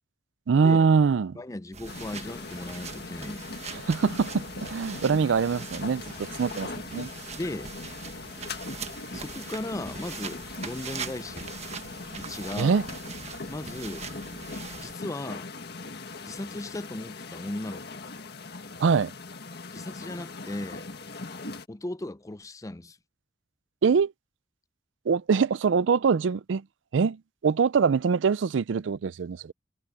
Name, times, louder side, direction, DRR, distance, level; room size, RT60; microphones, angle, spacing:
voice 1, 0.5-1.4 3.7-7.1 12.6-12.9 18.8-19.1 23.8-24.1 25.1-26.6 26.9-29.5, right 5 dB, 80° right, 0.4 m, -24 dB
voice 2, 1.3-3.5 6.1-6.2 7.4-7.7 9.1-11.5 12.2-12.8 13.5-14.1 14.8-15.5 16.2-18.0 19.7-20.8 21.7-23.0, left 1 dB, 15° left, 0.5 m, -37 dB
sound 1, 1.7-15.0, right 5 dB, 35° right, 1.3 m, -42 dB
sound 2, 1.9-21.7, left 3 dB, 60° left, 1.8 m, -40 dB
head